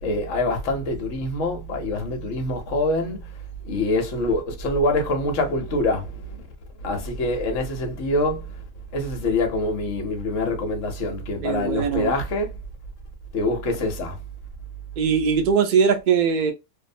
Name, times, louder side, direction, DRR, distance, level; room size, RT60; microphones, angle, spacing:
voice 1, 0.0-3.4 3.6-6.5 6.8-8.6 8.9-12.6 13.3-14.2, left 2 dB, 60° left, 1.1 m, -25 dB
voice 2, 11.4-12.2 15.0-16.5, right 6 dB, 55° right, 0.5 m, -21 dB
2.7 x 2.0 x 2.5 m
omnidirectional pair, 1.6 m